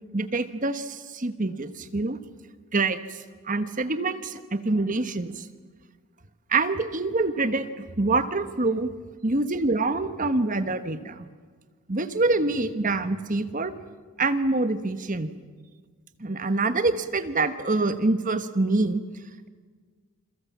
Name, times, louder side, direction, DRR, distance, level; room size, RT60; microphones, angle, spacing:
voice 1, 0.1-2.2 2.7-3.2 3.4-5.5 6.5-8.9 9.2-11.3 11.9-13.7 14.2-15.3 16.2-19.0, right 3 dB, 35° right, 11 dB, 1.2 m, -25 dB
28.5 x 22.5 x 7.3 m, 1.5 s
head